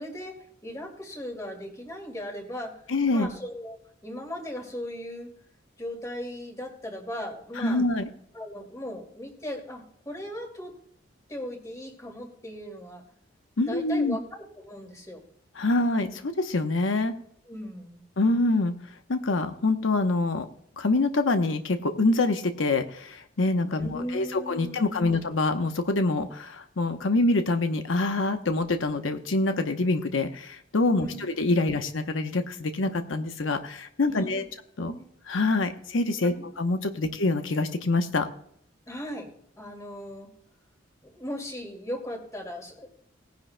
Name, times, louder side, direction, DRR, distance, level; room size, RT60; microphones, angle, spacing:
voice 1, 0.0-2.8 3.1-3.8 4.0-5.3 5.8-7.8 8.3-10.7 11.3-13.0 13.7-15.2 17.5-18.0 23.8-25.2 30.9-31.2 34.1-34.5 34.8-35.1 36.2-36.4 38.9-39.3 39.6-40.3 41.0-42.9, left 1 dB, 15° left, 2 dB, 2.3 m, -38 dB
voice 2, 2.9-3.3 7.6-8.1 13.6-14.2 15.6-17.1 18.2-18.7 19.1-20.5 20.8-34.4 34.8-34.9 35.3-38.3, left 2 dB, 90° left, 7 dB, 0.9 m, -25 dB
18.5 x 10.5 x 2.2 m, 0.66 s
head